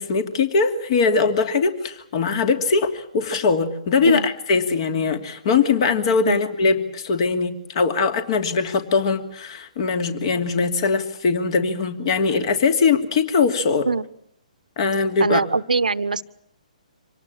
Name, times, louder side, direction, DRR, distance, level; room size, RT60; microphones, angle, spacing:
voice 1, 0.0-13.9 14.8-15.4, left 4 dB, 45° left, 2.7 m, -21 dB
voice 2, 15.2-16.2, right 4 dB, 75° right, 1.0 m, -22 dB
26.0 x 18.5 x 8.8 m
figure-of-eight pair, 130°, 4 cm